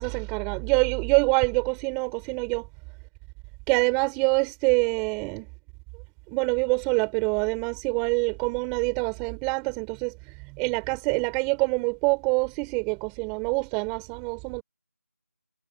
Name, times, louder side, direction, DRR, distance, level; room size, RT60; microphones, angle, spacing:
voice 1, 0.0-2.7 3.7-5.5 6.3-10.2 10.5-14.6, right 31 dB, 10° right, 4.4 m, -25 dB
figure-of-eight pair, 165°, 8 cm